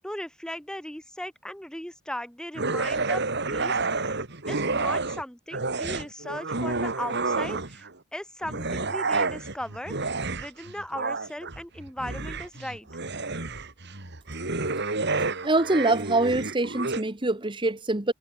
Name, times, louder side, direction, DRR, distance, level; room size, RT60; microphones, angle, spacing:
voice 1, 0.0-3.2 3.5-4.2 4.5-12.9, left 1 dB, 5° left, 1.4 m, -37 dB
sound 1, 2.6-5.2 5.5-7.9 8.4-17.0, right 3 dB, 55° right, 3.5 m, -29 dB
voice 2, 15.4-18.1, right 2 dB, 25° right, 1.4 m, -24 dB
head